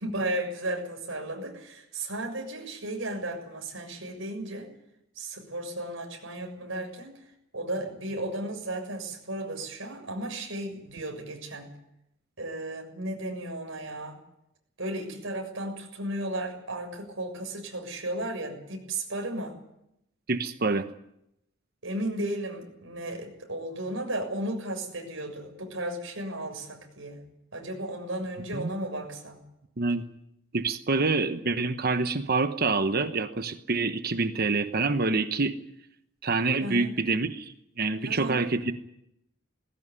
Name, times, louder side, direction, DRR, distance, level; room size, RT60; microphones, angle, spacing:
voice 1, 0.0-4.7 5.1-7.2 7.5-11.7 12.4-14.2 14.8-19.5 21.8-27.2 27.5-29.4 36.6-37.0 38.0-38.4, right 1 dB, 70° right, 3 dB, 7.0 m, -34 dB
voice 2, 20.3-20.8 28.5-28.7 29.8-30.0 30.5-35.5 36.2-38.7, right 3 dB, 50° right, 9 dB, 1.1 m, -26 dB
20.0 x 16.5 x 9.8 m, 0.81 s
head